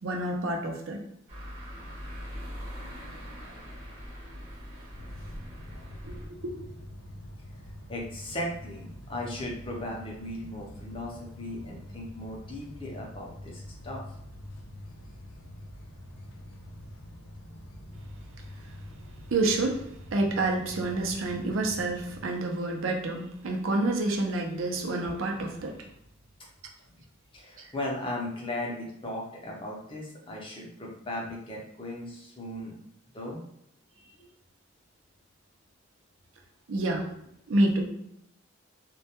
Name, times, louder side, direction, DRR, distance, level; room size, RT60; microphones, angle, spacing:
voice 1, 0.0-1.0 6.0-6.6 19.3-19.8 20.1-25.8 27.6-27.7 36.7-37.1 37.5-37.9, right 2 dB, 75° right, 1 dB, 0.5 m, -28 dB
sound 1, 1.3-6.3, equal, 40° right, 0.7 m, -42 dB
sound 2, 4.9-22.2, left 1 dB, 75° left, 0.4 m, -45 dB
voice 2, 7.9-14.0 27.3-32.8 33.1-33.4 34.2-34.3, left 1 dB, 25° left, -2 dB, 0.5 m, -37 dB
2.2 x 2.2 x 2.8 m, 0.78 s
head